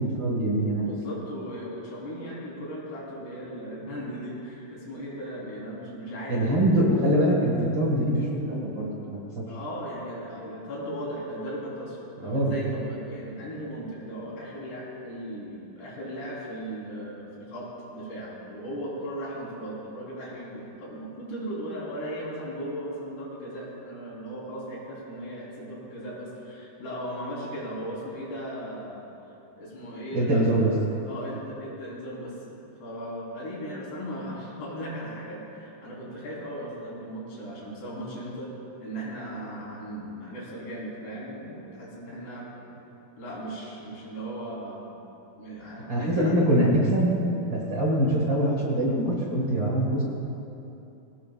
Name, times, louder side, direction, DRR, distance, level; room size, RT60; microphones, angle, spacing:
voice 1, 0.0-0.9 6.3-9.4 12.2-12.5 30.1-30.7 45.9-47.1 47.5-50.0, right 1 dB, 40° right, -4 dB, 2.1 m, -24 dB
voice 2, 0.8-6.6 9.5-29.0 29.6-30.4 31.0-38.5 38.8-42.5 43.2-45.0 45.4-46.3, equal, 85° left, -6 dB, 6.3 m, -37 dB
24.0 x 17.0 x 2.6 m, 2.9 s
omnidirectional pair, 4.5 m